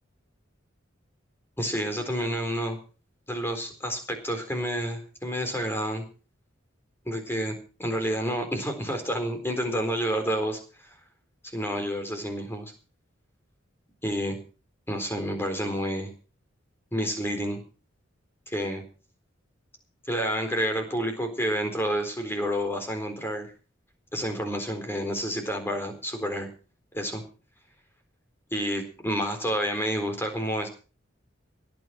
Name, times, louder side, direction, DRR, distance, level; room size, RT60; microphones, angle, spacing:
voice 1, 1.6-2.8 3.3-6.0 7.1-7.5 7.8-10.9 11.5-12.7 14.0-14.4 14.9-16.1 16.9-17.6 18.5-18.8 20.1-23.5 24.1-26.5 26.9-27.2 28.5-30.7, equal, 10° left, 5 dB, 4.0 m, -29 dB
17.5 x 9.6 x 6.0 m, 0.36 s
head